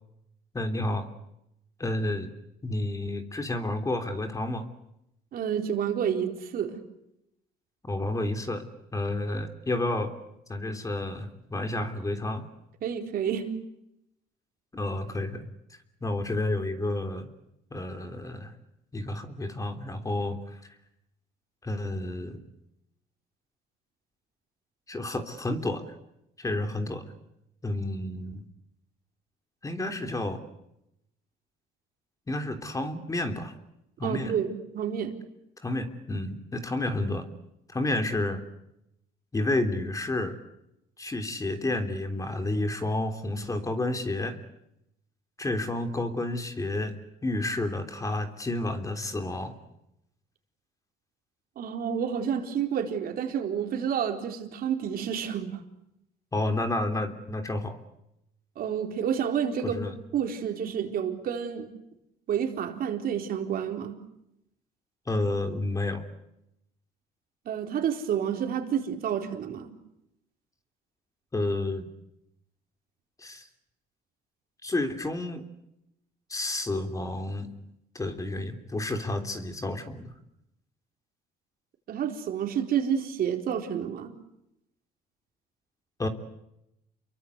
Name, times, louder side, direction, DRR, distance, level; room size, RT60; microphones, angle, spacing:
voice 1, 0.5-1.1 1.8-2.3 2.6-4.7 7.8-8.6 8.9-10.1 10.5-12.5 14.7-15.4 15.7-17.3 17.7-18.5 18.9-20.4 21.6-22.4 24.9-25.9 26.4-27.0 27.6-28.5 29.6-30.4 32.3-33.5 34.0-34.3 35.6-37.3 37.7-38.4 39.3-40.4 41.0-44.4 45.4-46.9 47.2-49.5 56.3-57.8 59.6-59.9 65.1-66.0 71.3-71.9 73.2-73.5 74.6-75.4 76.3-77.5 77.9-80.1 86.0-86.1, left 2 dB, 20° left, 6 dB, 3.3 m, -30 dB
voice 2, 5.3-6.8 12.8-13.5 34.0-35.2 51.6-55.6 58.6-59.8 60.1-61.7 62.3-64.0 67.5-69.7 81.9-84.1, right 8 dB, 60° right, 4 dB, 4.3 m, -29 dB
29.5 x 23.0 x 8.2 m, 0.83 s
cardioid pair, 110°, 17 cm